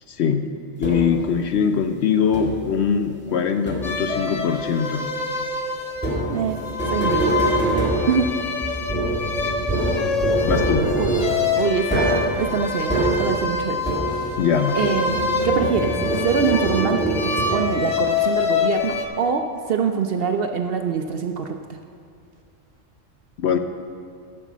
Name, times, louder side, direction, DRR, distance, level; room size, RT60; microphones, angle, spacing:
voice 1, 0.1-5.1 10.5-11.0 14.4-14.8 23.4-23.6, left 7 dB, 65° left, 7 dB, 0.8 m, -22 dB
sound 1, 0.8-1.3 2.3-2.8 3.7-4.2 6.0-14.5 14.8-17.9, right 1 dB, 10° left, 1.7 m, -25 dB
sound 2, 3.8-19.0, left 4 dB, 35° left, 0.8 m, -26 dB
voice 2, 6.3-6.6 6.9-7.4 7.7-8.3 11.0-11.1 11.6-13.8 14.1-14.3 14.8-15.2 15.4-21.8, right 6 dB, 60° right, 5 dB, 0.6 m, -24 dB
11.0 x 5.6 x 7.2 m, 2.3 s
omnidirectional pair, 1.3 m